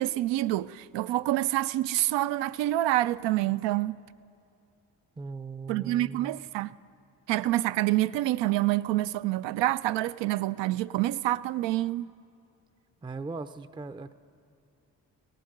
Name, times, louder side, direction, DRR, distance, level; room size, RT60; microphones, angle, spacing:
voice 1, 0.0-4.0 5.7-6.7 7.3-12.1, right 15 dB, 70° right, 0.5 m, -27 dB
voice 2, 5.2-6.4 13.0-14.1, right 4 dB, 10° right, 0.5 m, -39 dB
18.0 x 11.5 x 6.6 m
hypercardioid pair, 45°, 44 cm